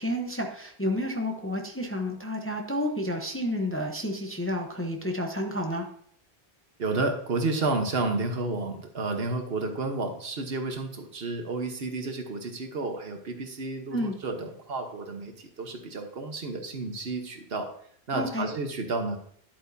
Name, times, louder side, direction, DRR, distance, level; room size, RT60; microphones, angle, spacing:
voice 1, 0.0-5.8 13.9-14.1 18.1-18.5, left 1 dB, 15° left, 2 dB, 0.8 m, -30 dB
voice 2, 6.8-17.7 18.1-19.2, right 3 dB, 65° right, 5 dB, 1.3 m, -31 dB
11.0 x 8.1 x 2.7 m, 0.62 s
omnidirectional pair, 1.1 m